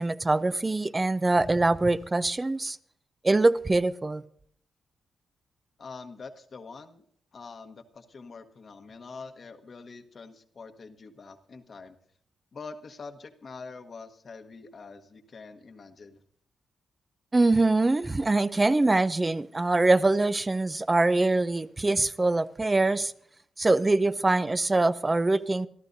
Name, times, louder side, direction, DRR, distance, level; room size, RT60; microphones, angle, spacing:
voice 1, 0.0-2.8 3.2-4.2 17.3-23.1 23.6-25.7, right 2 dB, 25° right, 0.6 m, -23 dB
voice 2, 5.8-7.0 7.3-12.0 12.5-16.2, left 4 dB, 55° left, 1.3 m, -45 dB
27.5 x 12.0 x 2.7 m
supercardioid pair, 50°, 0 cm